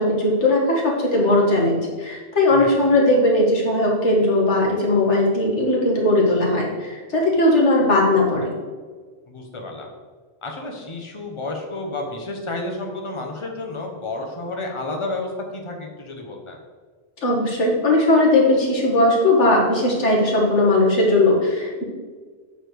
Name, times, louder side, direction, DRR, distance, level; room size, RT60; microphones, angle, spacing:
voice 1, 0.0-8.5 17.2-21.8, left 2 dB, 85° left, -2 dB, 2.1 m, -18 dB
voice 2, 9.3-9.9 10.4-16.6, left 2 dB, 25° left, 1 dB, 1.1 m, -31 dB
8.1 x 4.4 x 6.2 m, 1.5 s
omnidirectional pair, 1.2 m